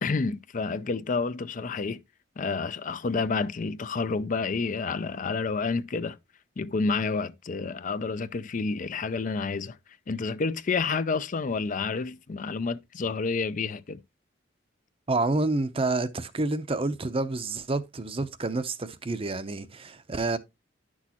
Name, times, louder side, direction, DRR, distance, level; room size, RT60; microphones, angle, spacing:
voice 1, 0.0-2.0 2.4-6.2 6.6-9.8 10.1-14.0, left 4 dB, 45° left, 0.4 m, -29 dB
voice 2, 15.1-20.4, right 2 dB, 30° right, 0.7 m, -28 dB
11.0 x 6.2 x 2.9 m
head